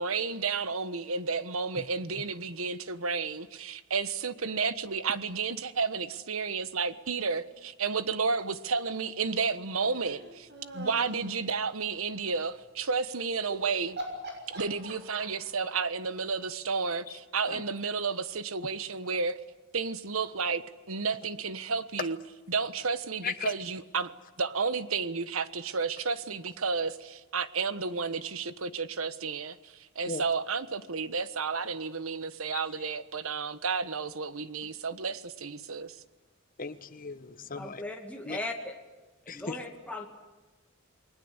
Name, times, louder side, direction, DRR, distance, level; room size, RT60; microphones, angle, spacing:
voice 1, 0.0-10.5 10.7-14.0 14.5-19.4 19.7-22.2 22.5-24.1 24.4-36.0, right 5 dB, 80° right, 1.3 m, -32 dB
sound 1, 9.9-11.3 13.4-13.6 14.0-15.5, right 1 dB, 55° right, 6.5 m, -41 dB
voice 2, 36.6-37.8 38.2-38.4 39.3-39.6, left 4 dB, 40° left, 1.3 m, -37 dB
voice 3, 37.6-38.7 39.3-40.1, left 2 dB, 5° left, 2.3 m, -38 dB
28.5 x 20.5 x 8.1 m
head